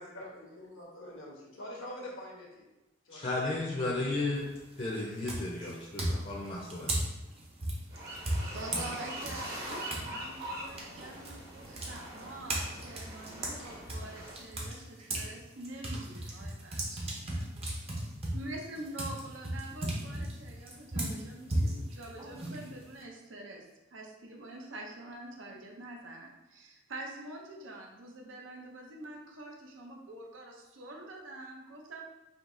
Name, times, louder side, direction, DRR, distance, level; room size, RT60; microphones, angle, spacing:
voice 1, 0.0-2.7 3.1-3.5, left 1 dB, 85° left, -2 dB, 1.1 m, -45 dB
voice 2, 3.1-4.5 4.8-6.9, left 2 dB, 35° left, -4 dB, 0.6 m, -34 dB
sound 1, 4.3-4.7 5.2-10.1 10.4-15.3 15.6-23.0, right 1 dB, 30° right, 0.7 m, -36 dB
sound 2, 7.9-14.3, right 1 dB, 55° right, 1.2 m, -43 dB
voice 3, 8.5-17.4 18.3-32.0, right 1 dB, 70° right, 1 dB, 0.6 m, -46 dB
5.0 x 2.8 x 2.6 m, 1.0 s
head